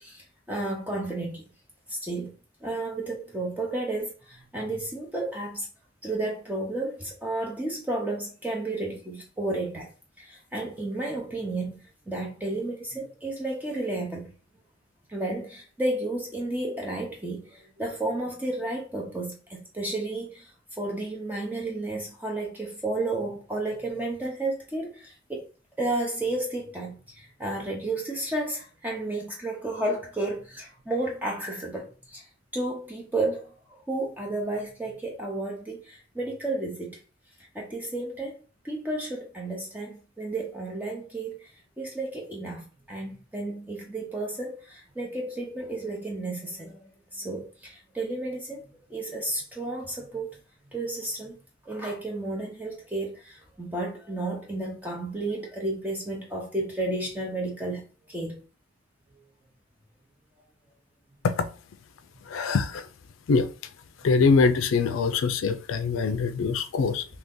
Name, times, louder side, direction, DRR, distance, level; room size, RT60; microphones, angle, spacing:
voice 1, 0.0-1.4 1.9-2.3 2.6-5.7 6.0-9.9 10.2-11.8 12.1-14.3 15.1-20.4 20.8-25.4 25.8-32.2 32.5-37.0 37.5-38.3 38.6-41.4 41.8-48.6 48.9-50.4 50.7-51.4 51.7-57.8 58.1-58.4, right 2 dB, 10° right, 0.6 m, -32 dB
voice 2, 62.2-62.9 63.3-63.5 64.0-67.1, left 4 dB, 75° left, 0.4 m, -23 dB
2.9 x 2.7 x 3.6 m
head